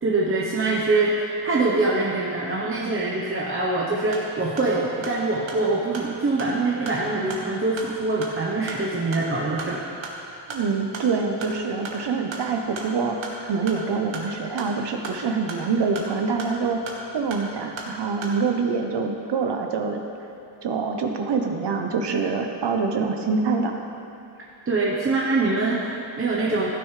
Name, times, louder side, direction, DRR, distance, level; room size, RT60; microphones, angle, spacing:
voice 1, 0.0-9.8 24.7-26.7, right 3 dB, 25° right, -5 dB, 0.9 m, -24 dB
sound 1, 4.0-18.4, right 2 dB, 75° right, 1.6 m, -38 dB
voice 2, 10.5-16.8 17.1-20.0 20.6-23.7, right 4 dB, 60° right, 3 dB, 0.9 m, -25 dB
15.0 x 9.8 x 3.3 m, 2.6 s
wide cardioid pair, 170°, 47 cm